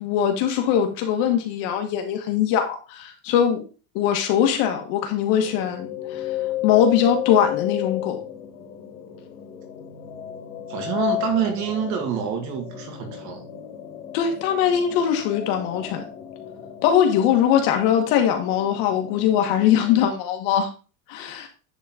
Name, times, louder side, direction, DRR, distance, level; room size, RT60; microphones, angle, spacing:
voice 1, 0.0-3.6 3.9-6.2 6.6-8.2 14.1-16.1 16.8-20.7 21.1-21.5, left 9 dB, 55° left, 1.9 m, -21 dB
sound 1, 5.4-20.1, left 12 dB, 85° left, 2.4 m, -33 dB
voice 2, 10.7-13.5, right 8 dB, 40° right, 2.0 m, -27 dB
10.0 x 4.1 x 4.3 m
cardioid pair, 160°, 43 cm